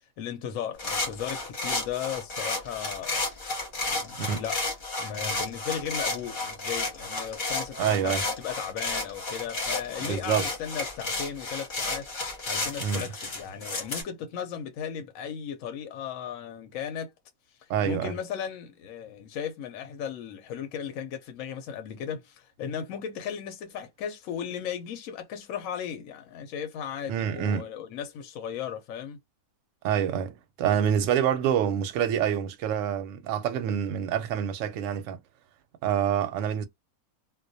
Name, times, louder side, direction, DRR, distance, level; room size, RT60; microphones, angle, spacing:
voice 1, 0.2-3.2 3.8-4.6 5.0-17.1 17.6-29.2, left 8 dB, 70° left, 0.9 m, -36 dB
sound 1, 0.8-14.0, left 2 dB, 45° left, 0.8 m, -32 dB
voice 2, 7.8-8.2 10.0-10.5 12.8-13.1 17.7-18.1 27.1-27.7 29.8-35.2 35.8-36.7, right 9 dB, 70° right, 0.8 m, -27 dB
2.3 x 2.1 x 2.5 m
omnidirectional pair, 1.5 m